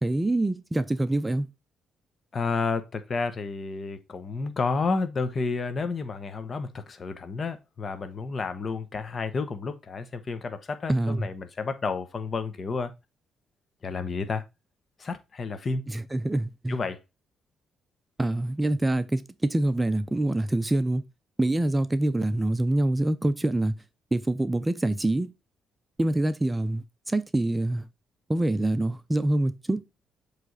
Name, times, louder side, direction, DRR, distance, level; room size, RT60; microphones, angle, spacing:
voice 1, 0.0-1.5 10.9-11.3 15.9-16.8 18.2-21.0 21.4-23.7 24.1-25.3 26.0-27.8 28.3-29.8, right 1 dB, 15° right, 0.5 m, -25 dB
voice 2, 2.3-12.9 13.8-14.4 15.0-15.9 16.7-17.0, left 4 dB, 40° left, 0.9 m, -31 dB
7.5 x 3.3 x 4.0 m
cardioid pair, 90°, 0 cm